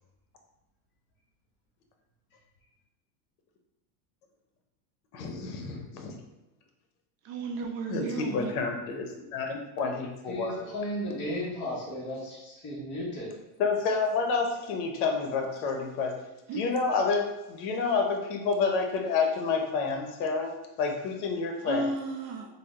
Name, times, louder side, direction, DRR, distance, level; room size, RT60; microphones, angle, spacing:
voice 1, 5.1-6.1 7.9-10.7 13.6-16.1 16.6-20.5 20.8-21.9, left 4 dB, 70° left, 4 dB, 0.8 m, -29 dB
voice 2, 7.2-8.6 16.5-16.7 21.6-22.5, right 3 dB, 45° right, 2 dB, 0.5 m, -33 dB
voice 3, 10.3-13.3, left 1 dB, 25° left, -6 dB, 0.9 m, -34 dB
3.4 x 2.1 x 3.5 m, 1.0 s
supercardioid pair, 140°, 46 cm